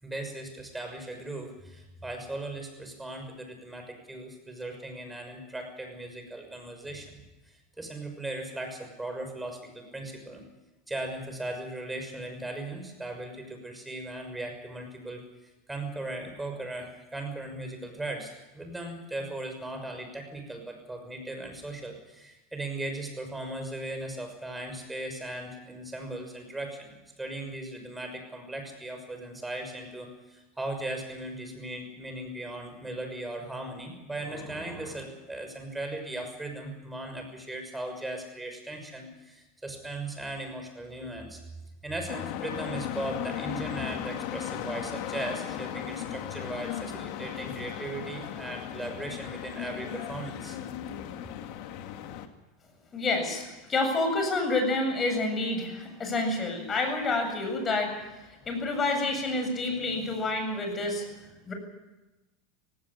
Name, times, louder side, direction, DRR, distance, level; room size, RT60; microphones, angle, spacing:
voice 1, 0.0-7.2 7.5-10.4 10.9-15.2 15.7-41.4 41.8-50.6, right 2 dB, 10° right, 4 dB, 6.3 m, -38 dB
sound 1, 42.1-52.3, left 10 dB, 60° left, 2.1 m, -36 dB
voice 2, 52.9-57.9 58.5-61.1 61.5-61.6, left 2 dB, 25° left, 5 dB, 7.5 m, -28 dB
18.0 x 17.0 x 9.9 m, 1.1 s
supercardioid pair, 110°, 0 cm